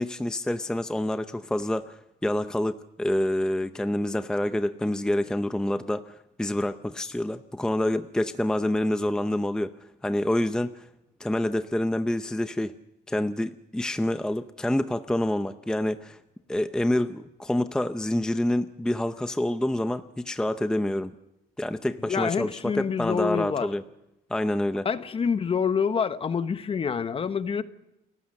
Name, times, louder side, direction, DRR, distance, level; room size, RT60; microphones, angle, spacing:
voice 1, 0.0-9.7 10.0-10.9 11.2-12.7 13.1-16.2 16.5-21.1 21.6-23.8 24.3-24.9, left 1 dB, 5° left, 0.7 m, -27 dB
voice 2, 22.1-23.7 24.8-27.6, left 6 dB, 35° left, 1.2 m, -27 dB
29.0 x 15.5 x 6.6 m
cardioid pair, 110°, 17 cm